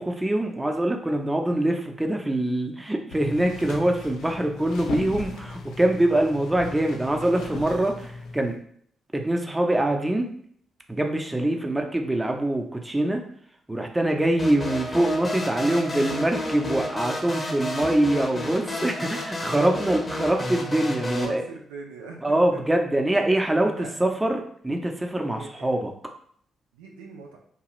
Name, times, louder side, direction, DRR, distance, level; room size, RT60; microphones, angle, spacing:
voice 1, 0.0-8.5 9.1-10.3 10.9-13.2 13.7-21.4 22.2-25.9, right 1 dB, 15° right, 3 dB, 0.6 m, -24 dB
sound 1, 3.1-8.6, left 4 dB, 80° left, 0.4 m, -38 dB
sound 2, 14.4-21.3, left 1 dB, 35° left, 0.7 m, -31 dB
voice 2, 17.4-18.2 21.1-22.6 23.3-23.4 23.7-23.9 25.3-25.8 26.7-27.4, right 5 dB, 90° right, 0 dB, 0.4 m, -41 dB
2.9 x 2.3 x 3.0 m, 0.62 s
hypercardioid pair, 45°, 0 cm